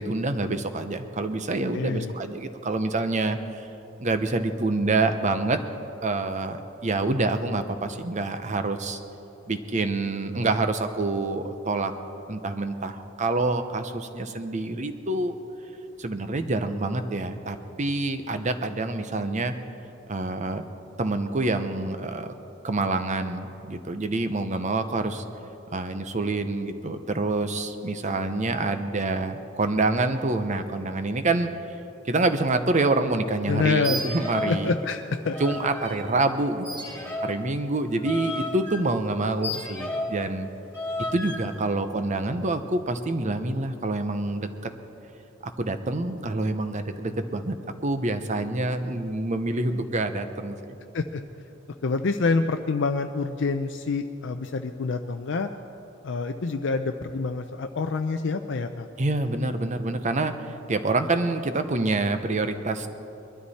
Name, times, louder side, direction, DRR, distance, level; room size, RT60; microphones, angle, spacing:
voice 1, 0.0-3.7 4.0-5.6 6.0-6.6 6.8-9.0 9.5-11.9 12.3-15.4 16.0-19.5 20.1-20.6 21.0-22.3 22.6-25.2 25.7-31.5 32.0-34.7 35.4-36.7 37.0-40.5 41.1-44.5 45.6-47.5 47.8-50.8 59.0-62.9, right 2 dB, 40° right, 9 dB, 0.8 m, -27 dB
voice 2, 1.7-2.1 33.5-34.0 34.5-35.4 50.9-51.2 51.8-55.5 56.0-58.9, left 4 dB, 65° left, 6 dB, 0.5 m, -27 dB
sound 1, 33.7-34.6 34.9-36.0 36.6-40.2 40.7-41.5, left 1 dB, 15° left, 2.4 m, -33 dB
22.0 x 12.5 x 4.2 m, 2.9 s
head